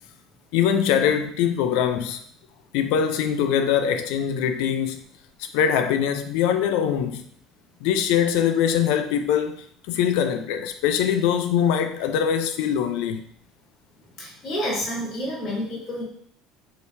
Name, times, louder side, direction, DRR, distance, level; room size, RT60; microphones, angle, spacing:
voice 1, 0.5-2.2 2.7-5.0 5.5-7.3 7.8-9.6 9.9-13.2, left 8 dB, 80° left, 0.3 m, -22 dB
voice 2, 14.2-16.0, equal, 40° left, 1.2 m, -29 dB
2.8 x 2.8 x 3.3 m
supercardioid pair, 110°, 0 cm